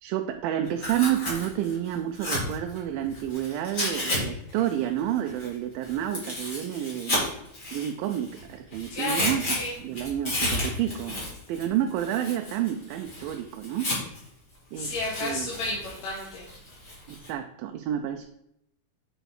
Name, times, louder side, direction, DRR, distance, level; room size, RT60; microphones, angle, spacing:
voice 1, 0.0-7.2 7.7-9.5 9.8-11.2 11.5-13.9 14.7-14.9 15.2-15.5 17.1-18.3, right 11 dB, 90° right, 5 dB, 2.3 m, -29 dB
Tearing, 0.7-4.2 4.5-8.4 8.7-14.3 14.7-17.3, left 1 dB, 25° left, 2.8 m, -33 dB
voice 2, 8.9-9.7 14.7-16.5, left 2 dB, 60° left, -4 dB, 2.5 m, -32 dB
7.9 x 5.2 x 4.8 m, 0.77 s
omnidirectional pair, 4.0 m